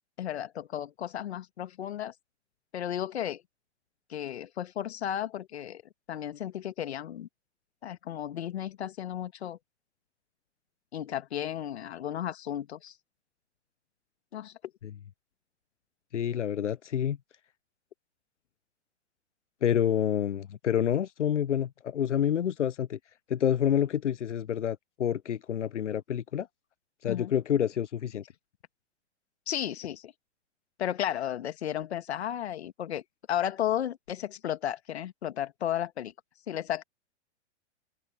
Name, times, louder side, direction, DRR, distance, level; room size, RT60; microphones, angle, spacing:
voice 1, 0.2-2.1 2.7-3.4 4.1-5.8 6.1-7.3 7.8-9.6 10.9-13.0 14.3-14.5 27.1-27.3 29.5-30.1 30.8-36.1 36.5-36.8, left 10 dB, 65° left, 2.2 m, -34 dB
voice 2, 16.1-17.2 19.6-23.0 23.3-26.5 27.0-28.2, left 9 dB, 85° left, 0.6 m, -28 dB
hypercardioid pair, 115°, 35 cm